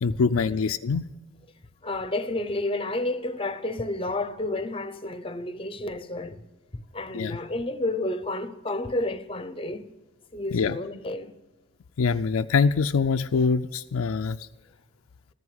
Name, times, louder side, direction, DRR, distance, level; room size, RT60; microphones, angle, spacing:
voice 1, 0.0-1.1 7.1-7.4 10.5-10.8 12.0-14.5, left 5 dB, 80° left, 0.4 m, -24 dB
voice 2, 1.8-6.4 6.7-9.9 10.3-11.3, left 2 dB, 25° left, 0.7 m, -30 dB
14.5 x 11.0 x 7.8 m
head